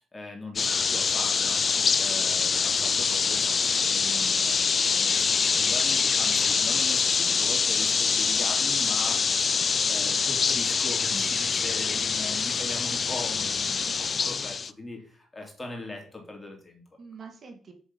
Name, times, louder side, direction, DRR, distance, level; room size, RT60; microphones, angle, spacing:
voice 1, 0.0-1.6 2.0-9.2 9.9-16.8, left 2 dB, 20° left, 1 dB, 3.1 m, -40 dB
sound 1, 0.6-14.7, left 5 dB, 40° left, 0.5 m, -25 dB
voice 2, 1.7-2.2 11.1-12.1 17.0-17.7, right 5 dB, 50° right, 4 dB, 2.2 m, -46 dB
7.1 x 6.9 x 5.5 m, 0.44 s
cardioid pair, 90°, 0 cm